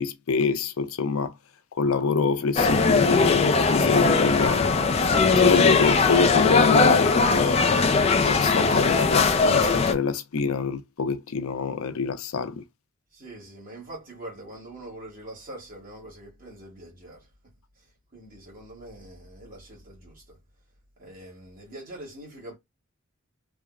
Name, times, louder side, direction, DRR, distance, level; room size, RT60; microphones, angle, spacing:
voice 1, 0.0-1.3 1.8-4.7 5.4-7.6 8.3-12.5, left 5 dB, 85° left, 0.5 m, -25 dB
sound 1, 2.6-9.9, left 4 dB, 30° left, 0.4 m, -20 dB
voice 2, 13.1-17.3 18.1-20.4 21.0-22.6, right 1 dB, 40° right, 1.2 m, -43 dB
3.4 x 2.1 x 2.3 m
head